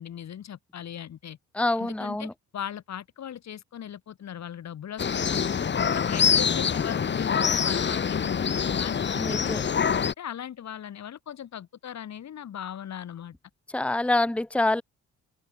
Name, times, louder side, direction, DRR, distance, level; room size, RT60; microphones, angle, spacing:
voice 1, 0.0-1.4 1.8-5.5 5.9-13.4, left 9 dB, 65° left, 5.7 m, -39 dB
voice 2, 1.5-2.3 9.2-9.6 13.7-14.8, left 2 dB, 5° left, 1.0 m, -26 dB
sound 1, 5.0-10.1, left 7 dB, 35° left, 1.4 m, -25 dB
open air
cardioid pair, 90°, 30 cm